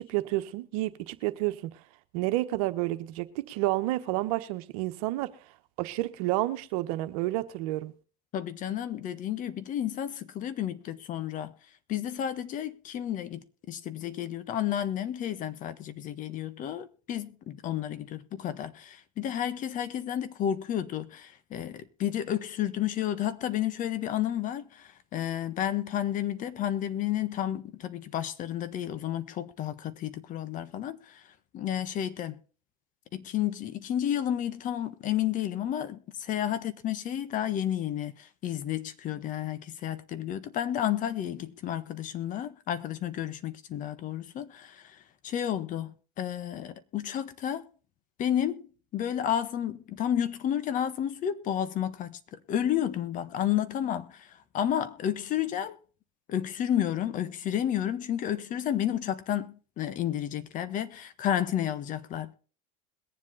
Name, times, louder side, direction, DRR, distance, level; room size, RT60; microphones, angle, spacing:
voice 1, 0.0-1.8 2.1-5.3 5.8-7.9, right 17 dB, 70° right, 1.2 m, -30 dB
voice 2, 8.3-11.5 11.9-31.2 31.5-32.4 33.1-45.0 45.2-47.7 48.2-48.7 48.9-54.3 54.5-55.8 56.3-62.3, left 10 dB, 45° left, 1.4 m, -31 dB
22.0 x 7.5 x 4.0 m
supercardioid pair, 105°, 19 cm